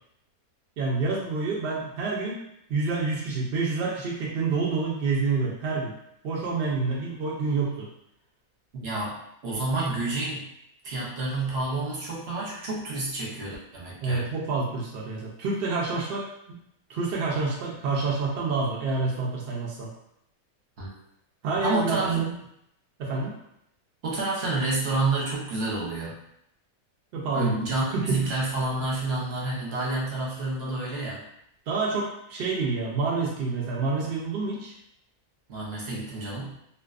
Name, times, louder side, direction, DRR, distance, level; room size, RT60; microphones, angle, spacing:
voice 1, 0.8-2.4 2.7-5.9 6.2-7.9 14.0-16.6 16.9-19.9 21.4-22.2 23.0-23.4 27.1-27.5 27.9-28.3 31.7-34.7, right 4 dB, 80° right, -3 dB, 0.5 m, -28 dB
voice 2, 8.8-10.5 10.8-14.3 20.8-20.9 21.6-22.4 24.0-26.2 27.3-31.2 35.5-36.6, right 2 dB, 55° right, -5 dB, 0.8 m, -29 dB
2.3 x 2.2 x 2.3 m, 0.77 s
omnidirectional pair, 1.6 m